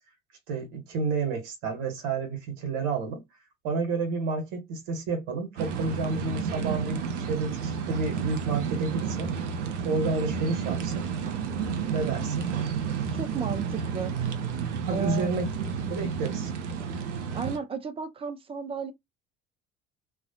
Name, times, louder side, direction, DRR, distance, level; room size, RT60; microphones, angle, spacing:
voice 1, 0.5-3.2 3.6-9.3 9.8-11.1 11.9-12.5 14.9-16.5, right 4 dB, 55° right, 1.0 m, -30 dB
sound 1, 5.6-17.6, right 7 dB, 75° right, 0.5 m, -31 dB
voice 2, 13.0-14.1 14.9-15.3 17.3-18.9, right 5 dB, 15° right, 0.3 m, -34 dB
2.3 x 2.1 x 2.7 m
figure-of-eight pair, 55°, 36 cm